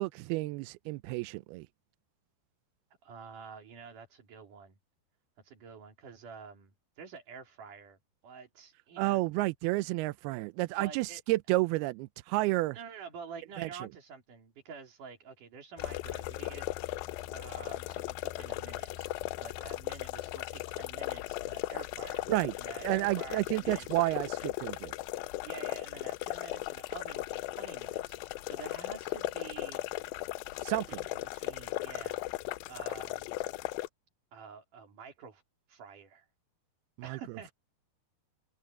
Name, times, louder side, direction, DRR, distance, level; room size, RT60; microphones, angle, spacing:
voice 1, 0.0-1.7 9.0-12.8 13.6-13.7 22.3-22.5 22.8-24.9 30.6-31.0 37.0-37.2, right 19 dB, 80° right, 2.4 m, -31 dB
voice 2, 3.0-4.7 5.4-8.0 8.2-9.2 10.8-11.2 12.7-16.7 17.3-19.1 19.4-22.3 22.6-24.0 25.4-29.9 30.5-33.3 34.3-35.4 35.7-36.3 37.0-37.5, right 5 dB, 50° right, 4.6 m, -48 dB
sound 1, 15.8-33.9, left 18 dB, 90° left, 2.0 m, -37 dB
omnidirectional pair, 4.7 m